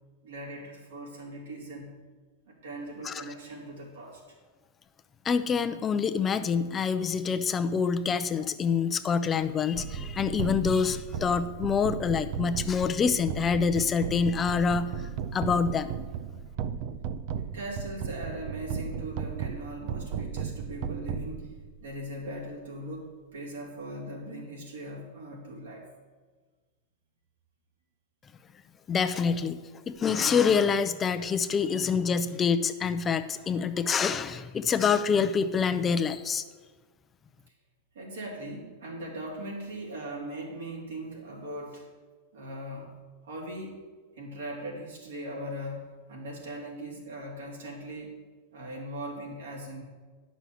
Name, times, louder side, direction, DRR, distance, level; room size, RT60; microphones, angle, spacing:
voice 1, 0.2-1.9 2.5-4.2 17.5-21.5 21.8-25.9 37.9-41.9 42.3-42.9 43.2-43.9 44.1-48.1 48.5-49.8, right 1 dB, 85° right, -2 dB, 3.1 m, -39 dB
voice 2, 5.2-14.9 15.3-15.9 28.9-29.6 29.9-36.4, left 6 dB, 25° left, 10 dB, 0.6 m, -26 dB
sound 1, 9.7-21.9, right 7 dB, 55° right, 0.5 m, -35 dB
9.8 x 6.2 x 7.1 m, 1.4 s
hypercardioid pair, 120°, 0 cm